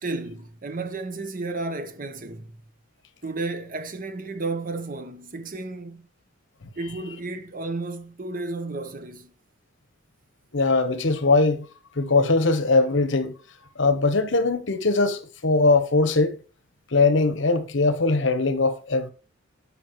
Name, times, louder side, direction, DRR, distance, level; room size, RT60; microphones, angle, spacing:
voice 1, 0.0-2.5 3.2-6.1 6.7-9.3, right 3 dB, 40° right, 0.9 m, -32 dB
voice 2, 10.5-11.7 12.0-13.3 13.8-16.4 16.9-19.1, left 3 dB, 65° left, 1.0 m, -21 dB
12.5 x 5.5 x 3.1 m
head